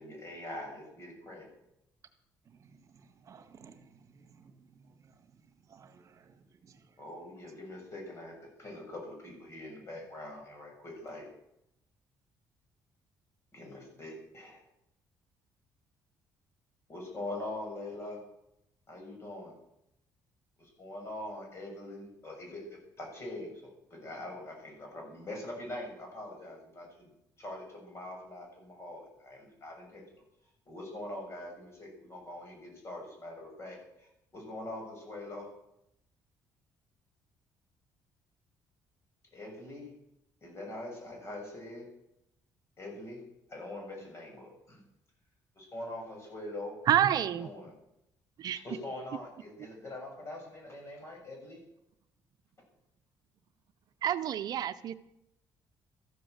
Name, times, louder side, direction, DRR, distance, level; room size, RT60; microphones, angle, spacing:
voice 1, 0.0-1.5 7.0-11.3 13.5-14.6 16.9-18.2 18.9-19.6 20.6-27.1 27.4-30.2 30.7-35.5 39.3-39.9 40.4-41.9 42.8-43.2 43.5-44.8 45.6-46.8 47.1-47.7 48.6-51.6, left 1 dB, 35° left, 1 dB, 6.9 m, -43 dB
voice 2, 2.4-5.3 5.6-7.0, right 6 dB, 45° right, 8 dB, 1.7 m, -58 dB
voice 3, 46.9-47.5 48.4-48.6 54.0-54.9, right 10 dB, 60° right, 10 dB, 0.7 m, -28 dB
14.0 x 11.5 x 8.0 m, 0.82 s
cardioid pair, 125°, 7 cm